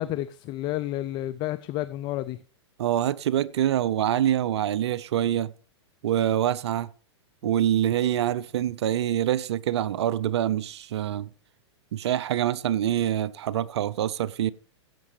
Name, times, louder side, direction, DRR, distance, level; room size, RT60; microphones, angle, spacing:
voice 1, 0.0-2.4, left 14 dB, 30° left, 0.5 m, -30 dB
voice 2, 2.8-5.5 6.0-6.9 7.4-11.3 11.9-14.5, right 11 dB, 65° right, 0.5 m, -25 dB
17.0 x 8.3 x 3.2 m
hypercardioid pair, 115°, 15 cm